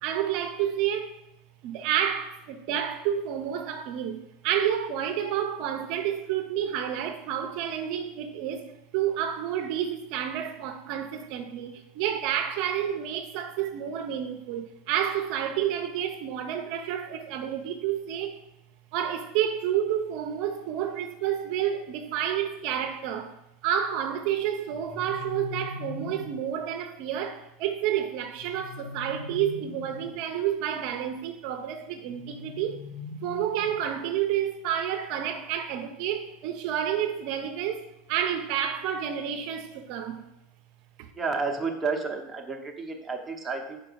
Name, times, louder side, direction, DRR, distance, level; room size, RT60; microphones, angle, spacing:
voice 1, 0.0-1.2 1.6-8.7 8.9-18.3 18.9-23.3 23.6-32.8 33.2-40.2 41.0-41.1, right 9 dB, 60° right, 0.5 m, -30 dB
sound 1, 24.7-26.5 28.4-30.2 32.1-34.0, left 4 dB, 90° left, 0.8 m, -41 dB
voice 2, 41.1-43.8, right 4 dB, 15° right, 0.8 m, -31 dB
5.0 x 4.5 x 4.6 m
supercardioid pair, 125°, 0 cm